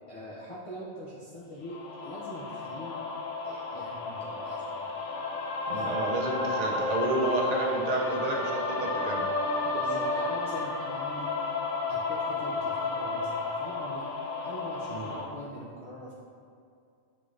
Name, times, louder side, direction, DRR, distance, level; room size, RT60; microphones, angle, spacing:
voice 1, 0.1-3.0 3.4-5.0 5.7-6.1 9.7-11.3 11.9-14.1 14.4-16.1, equal, 55° left, -7 dB, 0.3 m, -43 dB
sound 1, 1.7-15.2, left 3 dB, 85° left, 0.9 m, -32 dB
voice 2, 5.7-9.2 14.9-15.1, right 2 dB, 65° right, -1 dB, 0.4 m, -30 dB
5.8 x 2.5 x 3.1 m, 2.4 s
omnidirectional pair, 1.2 m